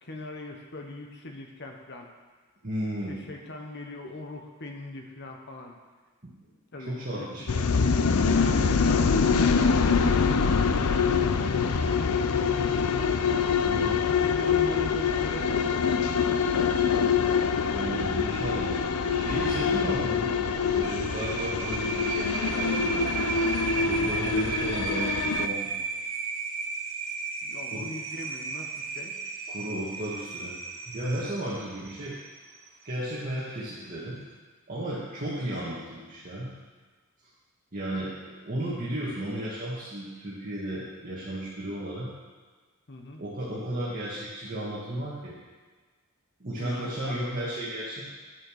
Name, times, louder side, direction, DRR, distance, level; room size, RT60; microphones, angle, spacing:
voice 1, 0.0-2.1 3.1-5.7 6.7-7.3 7.6-10.1 10.4-12.1 14.0-15.9 27.4-29.2 42.9-43.2 46.6-47.2, left 1 dB, 50° left, 2 dB, 1.2 m, -41 dB
voice 2, 2.6-3.2 6.2-6.3 6.8-7.7 13.6-14.0 17.7-20.4 20.7-23.1 23.8-25.8 27.7-27.9 29.5-30.6 30.9-32.2 32.8-34.2 34.7-36.5 37.7-42.1 43.2-45.4 46.4-48.1, right 1 dB, 40° right, -8 dB, 1.9 m, -34 dB
sound 1, 7.5-25.5, left 5 dB, 80° left, 0.6 m, -25 dB
sound 2, 20.8-32.9, right 6 dB, 65° right, 1.2 m, -34 dB
11.0 x 6.8 x 6.5 m, 1.4 s
head